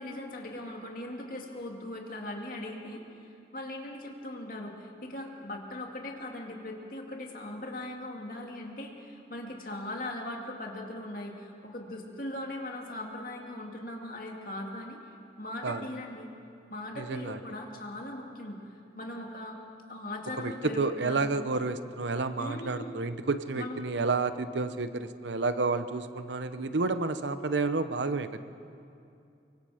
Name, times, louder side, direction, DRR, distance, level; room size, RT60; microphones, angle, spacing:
voice 1, 0.0-3.2 3.5-15.0 15.4-16.3 16.7-19.6 19.9-21.4 22.4-23.0 23.5-23.8, left 1 dB, 50° left, 1 dB, 2.4 m, -39 dB
voice 2, 17.0-17.4 20.4-28.4, right 3 dB, 80° right, 11 dB, 0.8 m, -30 dB
24.5 x 24.0 x 5.0 m, 2.6 s
head